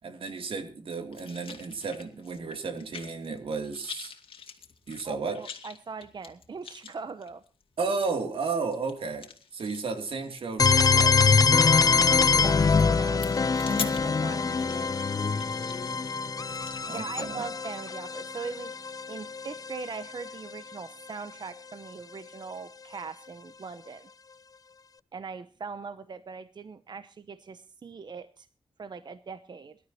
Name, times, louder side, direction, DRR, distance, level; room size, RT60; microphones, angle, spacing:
voice 1, 0.0-4.1 4.9-5.4 7.8-9.3 9.5-11.5 16.9-17.4, right 4 dB, 90° right, 6 dB, 2.7 m, -33 dB
sound 1, 1.1-3.4 3.6-17.1, left 6 dB, 90° left, 2.2 m, -44 dB
voice 2, 5.0-7.4 12.4-13.2 13.7-14.9 16.7-18.7 19.1-24.1 25.1-28.5 28.8-29.8, right 5 dB, 55° right, 12 dB, 0.8 m, -41 dB
sound 2, 10.6-20.3, left 5 dB, 40° left, 0.6 m, -24 dB
23.5 x 12.5 x 2.9 m, 0.37 s
wide cardioid pair, 105°, 9 cm